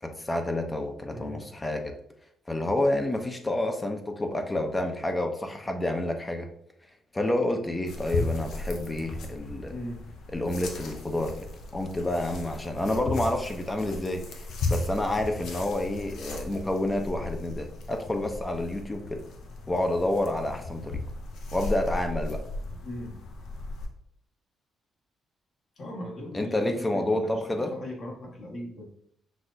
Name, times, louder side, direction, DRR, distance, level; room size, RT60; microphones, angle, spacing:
voice 1, 0.0-1.9 2.5-6.5 7.1-9.7 10.3-11.3 11.7-19.2 19.7-21.0 21.5-22.4 26.3-27.7, left 1 dB, 20° left, 4 dB, 0.5 m, -29 dB
voice 2, 1.1-1.4 9.7-10.0 22.8-23.2 25.8-27.4 27.7-28.9, left 1 dB, 55° left, -1 dB, 1.2 m, -38 dB
sound 1, 7.9-23.9, left 2 dB, 75° left, 0.7 m, -36 dB
6.0 x 2.4 x 2.5 m, 0.70 s
cardioid pair, 90°, 0 cm